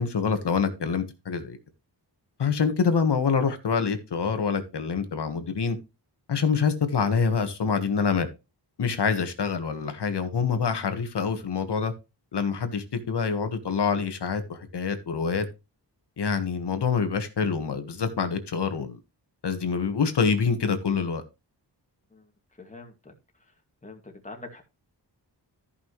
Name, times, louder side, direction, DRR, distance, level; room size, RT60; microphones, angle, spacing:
voice 1, 0.0-1.6 2.4-5.8 6.3-8.3 8.8-11.9 12.3-15.5 16.2-19.0 19.4-21.2, left 5 dB, 70° left, 1.6 m, -26 dB
voice 2, 22.6-23.1 23.8-24.6, left 2 dB, 15° left, 2.3 m, -44 dB
14.0 x 5.7 x 3.2 m
wide cardioid pair, 130°, 42 cm